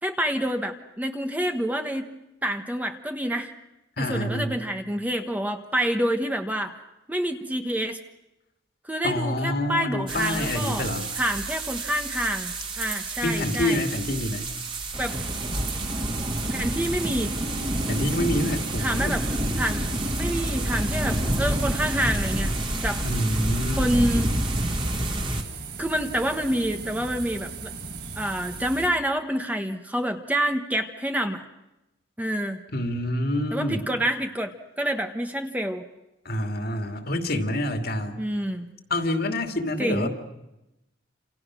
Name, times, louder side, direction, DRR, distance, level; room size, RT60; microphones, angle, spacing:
voice 1, 0.0-2.1 2.4-3.5 4.0-6.8 7.1-8.0 8.8-10.9 11.1-13.8 15.0-15.2 16.5-17.3 18.8-19.2 19.6-19.8 20.2-22.5 22.8-23.0 23.8-24.4 25.8-27.7 28.2-31.4 32.2-32.6 33.5-35.8 38.2-38.7 39.8-40.1, equal, 10° right, 5 dB, 1.3 m, -27 dB
voice 2, 4.0-4.6 9.0-11.1 13.2-14.5 17.0-17.2 17.9-19.2 23.0-23.9 32.7-33.8 36.2-38.2 38.9-40.1, left 1 dB, 55° left, 5 dB, 2.5 m, -27 dB
sound 1, 10.1-25.4, right 1 dB, 25° right, 2.5 m, -28 dB
sound 2, 15.0-28.9, right 4 dB, 55° right, 5.4 m, -38 dB
29.5 x 28.0 x 6.3 m, 0.94 s
head